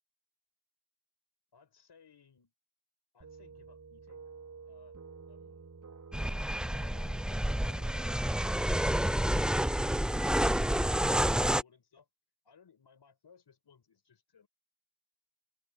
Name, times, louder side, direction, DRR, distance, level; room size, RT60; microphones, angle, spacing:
voice 1, 1.5-2.5 3.1-4.3 4.6-5.0 5.3-5.7 6.7-12.1 12.4-14.5, left 6 dB, 75° left, 5.8 m, -62 dB
sound 1, 3.2-10.2, right 4 dB, 50° right, 5.2 m, -52 dB
sound 2, 6.1-11.6, equal, ahead, 0.3 m, -29 dB
wide cardioid pair, 90°, 41 cm